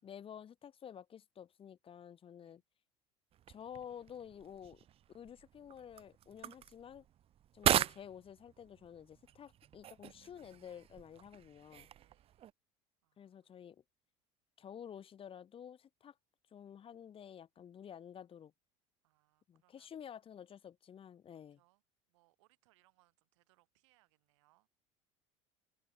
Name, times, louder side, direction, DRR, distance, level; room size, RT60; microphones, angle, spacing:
voice 1, 0.0-2.6 3.5-4.8 5.1-7.1 7.5-11.9 13.2-13.8 14.6-16.1 16.5-18.5 19.5-21.6, left 8 dB, 35° left, 1.9 m, -51 dB
sound 1, 3.3-12.5, right 11 dB, 40° right, 0.6 m, -40 dB
voice 2, 11.9-12.5 13.0-13.5 19.0-19.9 21.5-21.8 22.1-24.7, right 23 dB, 80° right, 6.7 m, -75 dB
supercardioid pair, 95°, 15 cm